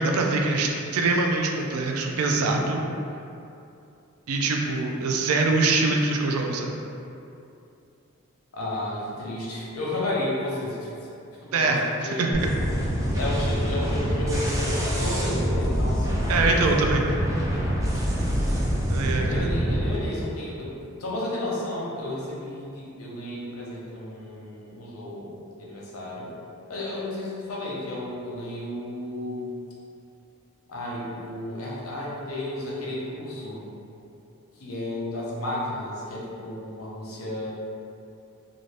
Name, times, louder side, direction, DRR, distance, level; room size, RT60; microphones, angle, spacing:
voice 1, 0.0-2.8 4.3-6.7 11.5-12.5 16.3-17.1 18.9-19.5, right 3 dB, 85° right, 1 dB, 0.4 m, -24 dB
voice 2, 2.4-2.8 8.5-10.9 11.4-12.3 13.1-16.3 19.1-20.7 21.0-25.3 25.6-26.3 26.7-29.5 30.7-33.6 34.6-37.5, left 1 dB, 85° left, -5 dB, 0.7 m, -32 dB
sound 1, 12.3-20.0, equal, 15° right, 0.4 m, -25 dB
2.6 x 2.5 x 3.2 m, 2.7 s
head